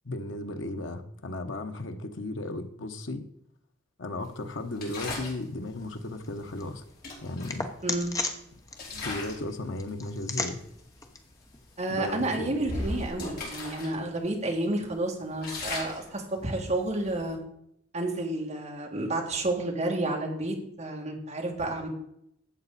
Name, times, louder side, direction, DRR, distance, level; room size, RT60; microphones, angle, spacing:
voice 1, 0.0-3.3 4.0-6.8 7.2-7.7 8.9-10.6 11.9-12.5, left 2 dB, 75° left, 6 dB, 1.1 m, -35 dB
sound 1, 4.8-5.4 6.6-6.7 7.0-8.2 8.7-9.5 9.9-10.1 10.8-10.9 11.3-11.5 12.0-13.9 14.3-14.4 14.8-17.3, left 2 dB, 50° left, 4.0 m, -37 dB
sound 2, 5.7-12.5, left 3 dB, 20° left, 1.0 m, -39 dB
voice 2, 7.8-8.2 11.8-17.4 17.9-21.9, right 2 dB, 35° right, 0 dB, 2.4 m, -30 dB
12.5 x 8.0 x 4.2 m, 0.74 s
head